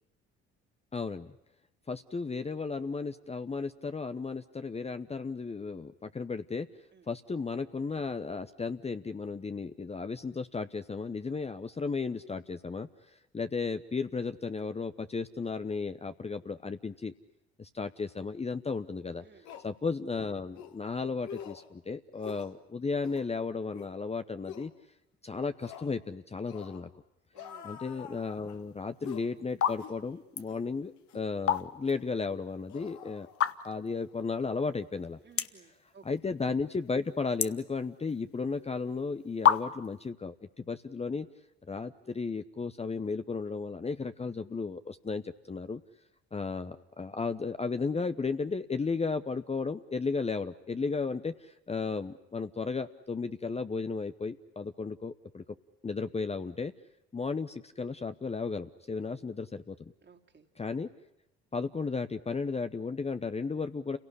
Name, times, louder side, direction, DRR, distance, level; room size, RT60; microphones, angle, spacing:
voice 1, 0.9-1.3 1.9-6.7 7.1-12.9 13.3-17.1 17.6-19.2 19.6-24.7 25.2-26.9 27.6-33.3 33.6-35.2 36.0-41.3 41.7-45.8 46.3-55.4 55.8-56.7 57.1-59.8 60.6-60.9 61.5-64.0, left 4 dB, 20° left, 10 dB, 0.9 m, -34 dB
sound 1, 18.7-18.8 19.4-19.7 20.5-20.8 21.2-21.7 22.2-22.5 23.0-23.3 23.7-23.9 24.4-24.7 25.6-25.9 26.5-26.8 27.3-28.6 29.0-29.3 29.8-30.0 30.5-30.6 31.1-31.3 31.9-32.0 32.7-33.8 34.0-34.2, left 8 dB, 65° left, 1.9 m, -46 dB
voice 2, 27.3-27.7 35.2-36.0 58.9-59.0 60.0-60.5, right 5 dB, 35° right, 4 dB, 2.7 m, -57 dB
sound 2, 28.8-29.0 29.5-29.8 30.1-30.5 31.2-32.0 32.3-32.4 33.3-33.9 34.4-34.5 34.7-34.8 35.3-35.7 36.1-36.6 36.9-38.2 38.9-39.0 39.4-40.0, left 9 dB, 45° left, 1.1 m, -27 dB
29.0 x 18.0 x 9.9 m, 0.88 s
hypercardioid pair, 60°, 31 cm